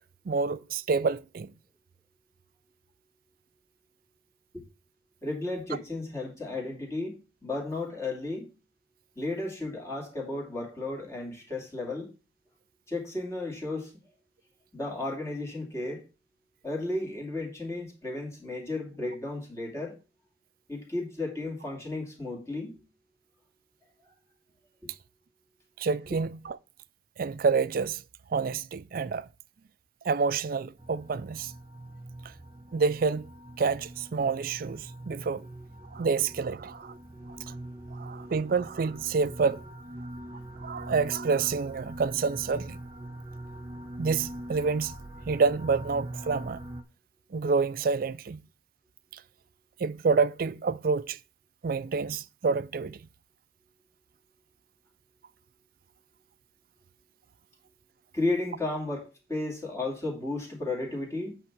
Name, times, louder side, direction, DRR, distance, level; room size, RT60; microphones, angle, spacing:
voice 1, 0.3-1.5 25.8-26.6 27.2-28.0 28.3-29.3 30.0-31.5 32.7-33.3 33.6-35.5 35.9-37.0 37.5-37.6 37.9-39.6 40.6-42.8 44.0-44.9 45.3-46.6 47.3-48.4 49.8-51.2 51.6-53.0, right 5 dB, 50° right, 0.4 m, -28 dB
voice 2, 5.2-8.5 9.2-12.1 12.9-13.9 14.7-16.0 16.6-20.0 20.7-22.8 24.8-24.9 35.6-35.7 37.3-38.3 40.2-40.9 43.2-43.9 58.1-61.4, left 2 dB, 15° left, 2.5 m, -34 dB
sound 1, 30.8-46.8, right 1 dB, 25° right, 0.8 m, -43 dB
8.7 x 3.6 x 6.0 m
head